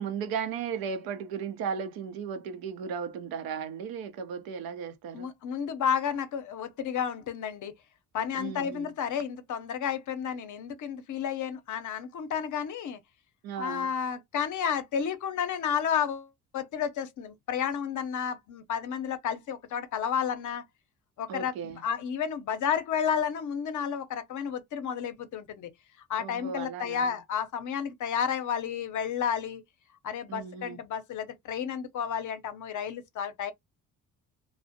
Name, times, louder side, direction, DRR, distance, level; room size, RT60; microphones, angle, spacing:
voice 1, 0.0-5.3 8.4-8.9 13.4-13.9 21.3-21.8 26.2-27.1 30.3-30.8, right 6 dB, 85° right, 0.6 m, -36 dB
voice 2, 5.1-7.7 8.1-13.0 13.6-20.6 21.2-25.7 26.1-29.6 30.0-33.5, left 8 dB, 55° left, 0.6 m, -31 dB
2.4 x 2.0 x 2.6 m
cardioid pair, 85°, 35 cm